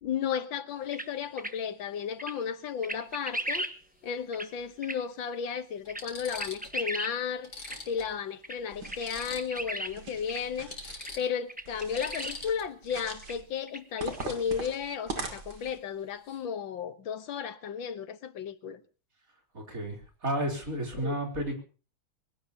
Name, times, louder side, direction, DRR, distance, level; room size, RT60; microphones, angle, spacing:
voice 1, 0.0-3.7 4.0-7.5 7.9-10.7 11.2-18.8 21.0-21.2, left 7 dB, 80° left, 1.9 m, -34 dB
sound 1, 0.9-1.1 1.4-1.5 2.2-2.3 2.8-3.7 4.3-4.5 4.8-5.0 5.5-5.6 5.9-6.0 6.3-7.1 7.6-7.8 8.4-8.6 8.8-9.9 10.3-10.4 11.0-11.1 11.5-12.3 12.9-13.0 13.2-13.3 13.7-14.2, right 1 dB, 5° right, 0.7 m, -35 dB
sound 2, 2.9-3.1 4.6-4.7 5.3-5.4 5.8-6.8 7.1-7.2 7.4-9.7 10.0-10.2 10.5-12.9 15.5-15.7 16.0-16.4, left 3 dB, 55° left, 4.0 m, -44 dB
sound 3, 8.7-9.4 9.9-11.0 11.6-12.5 12.8-13.4 14.0-15.8, right 4 dB, 60° right, 3.0 m, -41 dB
voice 2, 19.5-21.6, right 1 dB, 45° right, 4.1 m, -32 dB
24.5 x 17.0 x 2.9 m
omnidirectional pair, 2.1 m